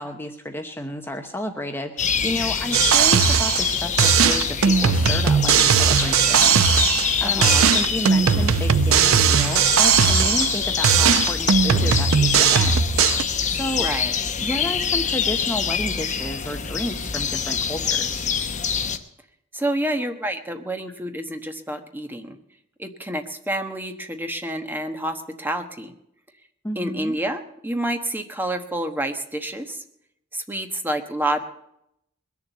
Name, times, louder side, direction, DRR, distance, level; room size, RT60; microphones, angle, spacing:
voice 1, 0.0-6.6 7.0-12.8 13.5-13.9 14.4-18.3 26.6-27.2, left 1 dB, 10° left, 5 dB, 0.9 m, -31 dB
sound 1, 2.0-19.0, left 7 dB, 35° left, 1.0 m, -25 dB
sound 2, 2.7-3.7 4.0-7.2 7.4-10.6 10.8-13.2, right 7 dB, 80° right, 0.7 m, -18 dB
voice 2, 7.2-7.7 13.7-14.1 19.5-22.4 22.8-25.9 26.8-29.8 30.3-31.4, right 1 dB, 10° right, 6 dB, 1.1 m, -28 dB
21.0 x 7.1 x 8.1 m, 0.78 s
head